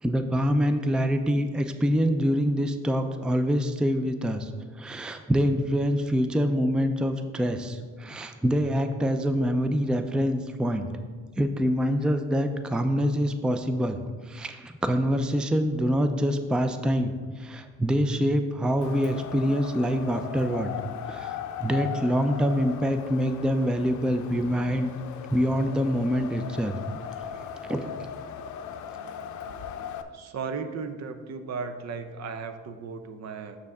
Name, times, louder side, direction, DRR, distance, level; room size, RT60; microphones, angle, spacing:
voice 1, 0.0-4.5 4.8-10.9 11.4-14.0 14.3-20.7 21.1-24.9 25.3-26.8 27.7-27.9, equal, 5° right, 8 dB, 0.4 m, -25 dB
Wind, 18.8-30.0, left 8 dB, 70° left, 0.5 m, -38 dB
voice 2, 30.1-33.6, right 5 dB, 60° right, 8 dB, 0.7 m, -35 dB
6.7 x 6.4 x 3.5 m, 1.5 s
cardioid pair, 90°, 30 cm